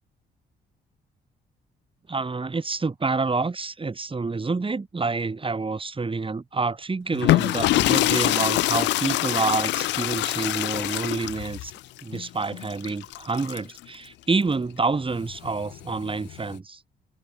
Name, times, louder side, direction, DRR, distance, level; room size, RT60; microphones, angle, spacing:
voice 1, 2.1-11.7 12.0-16.8, right 4 dB, 30° right, 7.4 m, -28 dB
sound 1, 7.1-13.8 15.1-16.5, left 17 dB, 80° left, 0.5 m, -25 dB
supercardioid pair, 70°, 18 cm